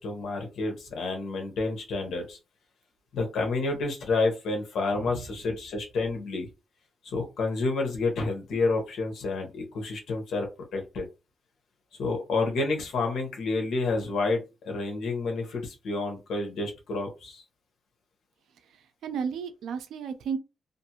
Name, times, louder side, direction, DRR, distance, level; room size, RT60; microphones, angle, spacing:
voice 1, 0.0-2.4 3.1-6.5 7.0-10.5 10.7-11.1 12.0-17.4, left 3 dB, 75° left, 0.9 m, -29 dB
voice 2, 18.7-20.4, right 6 dB, 85° right, 0.5 m, -34 dB
2.6 x 2.5 x 2.8 m
cardioid pair, 145°, 0 cm